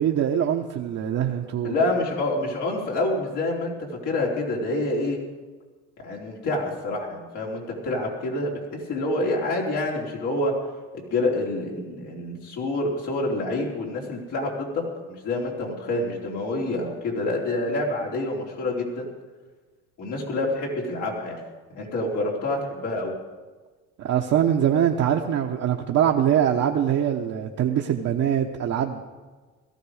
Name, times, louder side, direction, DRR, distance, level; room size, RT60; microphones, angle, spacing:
voice 1, 0.0-1.7 24.0-29.0, right 9 dB, 65° right, 0 dB, 1.1 m, -23 dB
voice 2, 1.6-3.7 4.0-5.2 6.0-10.5 10.9-19.1 20.0-21.4 21.7-23.1, left 2 dB, 85° left, -2 dB, 4.0 m, -27 dB
17.5 x 14.0 x 5.0 m, 1.3 s
cardioid pair, 90°, 29 cm